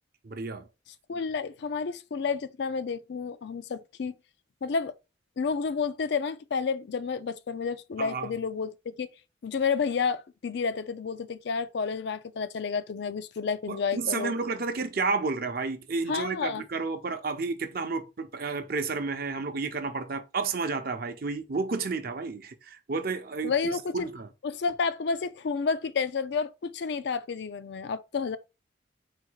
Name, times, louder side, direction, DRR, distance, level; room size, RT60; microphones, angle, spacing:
voice 1, 0.2-0.7 8.0-8.3 13.7-24.3, right 4 dB, 50° right, 0.6 m, -31 dB
voice 2, 1.1-4.1 4.6-4.9 5.4-9.1 9.4-14.3 16.1-16.6 23.4-24.1 24.4-28.4, left 5 dB, 65° left, 0.4 m, -30 dB
4.4 x 2.3 x 4.6 m
head